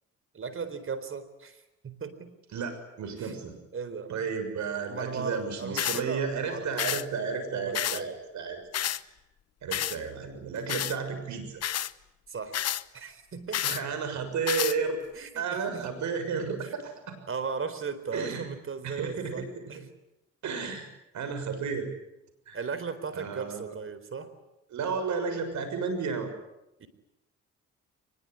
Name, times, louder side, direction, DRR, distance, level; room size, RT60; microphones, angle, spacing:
voice 1, 0.3-2.3 3.2-3.3 3.7-4.1 4.9-6.7 7.5-8.1 12.3-12.5 12.9-13.6 15.1-15.9 16.6-16.7 17.3-19.8 22.5-24.3 26.8-26.9, right 5 dB, 45° right, 12 dB, 4.0 m, -37 dB
voice 2, 2.5-3.5 4.1-8.6 9.0-9.1 9.6-11.6 13.6-15.0 15.3-17.2 18.1-18.5 18.8-19.8 20.4-20.9 21.1-21.9 22.5-22.6 23.1-23.7 24.7-26.3, right 5 dB, 70° right, 8 dB, 6.8 m, -32 dB
sound 1, 5.8-6.0 6.8-7.0 7.7-8.0 8.7-9.0 9.7-10.0 10.7-11.0 11.6-11.9 12.5-12.8 13.5-13.8 14.5-14.8, left 11 dB, 55° left, 0.9 m, -29 dB
24.0 x 22.0 x 9.9 m, 0.89 s
cardioid pair, 90°, 30 cm